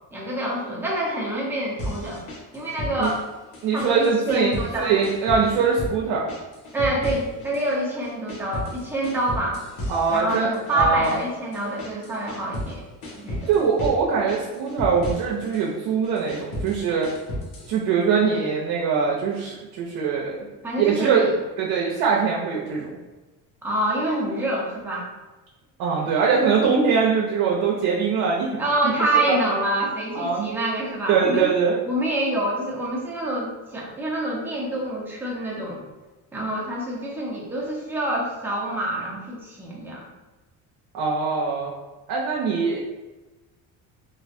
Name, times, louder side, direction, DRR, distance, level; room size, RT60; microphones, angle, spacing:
voice 1, 0.1-2.2 2.5-3.2 3.7-4.9 6.7-9.6 10.1-12.8 13.2-13.5 20.6-21.3 23.6-25.1 28.6-31.5 31.9-35.8 36.3-40.0, right 1 dB, 5° right, -5 dB, 0.7 m, -26 dB
sound 1, 1.8-3.3 3.5-4.8 5.0-6.0 6.3-7.7 8.0-12.7 13.0-14.0 14.3-15.6 16.0-17.7, left 1 dB, 75° left, 1.0 m, -33 dB
voice 2, 3.6-6.3 9.9-11.1 13.5-17.1 17.7-20.3 20.8-21.2 21.6-23.0 25.8-28.5 28.8-29.4 30.1-30.5 31.1-31.9 40.9-41.7 42.1-42.8, right 5 dB, 65° right, -3 dB, 0.7 m, -22 dB
3.1 x 2.5 x 2.6 m, 1.1 s
cardioid pair, 120°, 37 cm